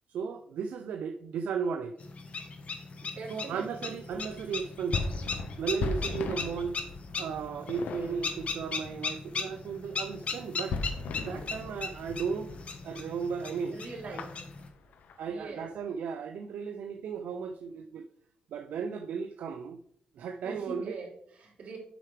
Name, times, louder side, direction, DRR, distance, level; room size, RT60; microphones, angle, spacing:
voice 1, 0.1-1.9 3.3-5.0 5.6-6.8 7.1-10.8 11.2-12.6 12.8-13.8 14.1-14.2 15.2-18.0 18.5-19.8 20.1-21.0, right 6 dB, 80° right, 0.5 m, -35 dB
sound 1, 2.0-14.7, left 4 dB, 50° left, 1.1 m, -38 dB
voice 2, 3.0-3.9 13.7-14.4 15.2-15.7 20.4-21.8, right 3 dB, 60° right, 3.1 m, -43 dB
sound 2, 4.1-13.0 13.3-13.5 13.8-15.7, left 3 dB, 80° left, 0.8 m, -38 dB
7.9 x 5.8 x 3.3 m
cardioid pair, 90°, 3 cm